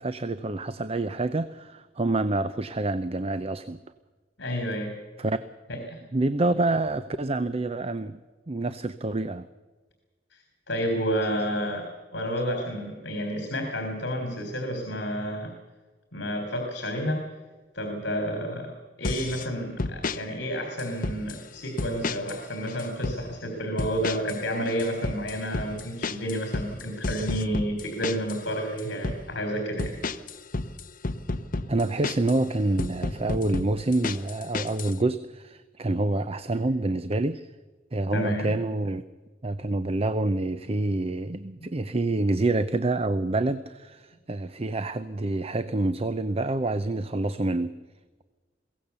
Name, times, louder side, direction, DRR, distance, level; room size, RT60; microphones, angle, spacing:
voice 1, 0.0-3.8 5.2-5.4 6.1-8.2 8.5-9.5 31.7-37.5 37.9-39.0 39.4-47.8, right 2 dB, 35° right, 12 dB, 0.7 m, -27 dB
voice 2, 4.4-5.0 5.7-6.0 10.7-15.5 16.1-17.2 17.7-29.9 38.1-38.6, equal, 65° left, 4 dB, 3.5 m, -30 dB
sound 1, 19.0-19.5 19.8-20.2 20.8-21.4 21.8-22.4 22.7-23.2 23.8-24.4 24.7-28.4 28.8-29.2 29.8-32.4 32.8-34.9, left 3 dB, 50° left, 1.0 m, -31 dB
22.5 x 17.0 x 6.9 m, 1.3 s
head